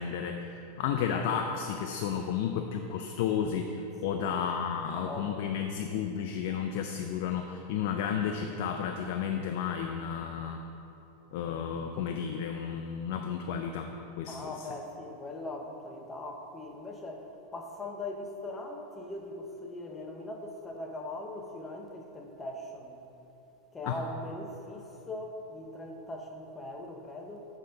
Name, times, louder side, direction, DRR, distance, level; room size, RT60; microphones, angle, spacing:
voice 1, 0.0-10.7 11.3-14.7 23.9-24.0, left 7 dB, 60° left, 4 dB, 0.4 m, -32 dB
voice 2, 4.0-4.4 4.9-5.4 14.3-23.0 23.7-27.5, left 2 dB, 15° left, 2 dB, 0.7 m, -40 dB
7.3 x 3.9 x 5.6 m, 2.9 s
supercardioid pair, 145°, 0 cm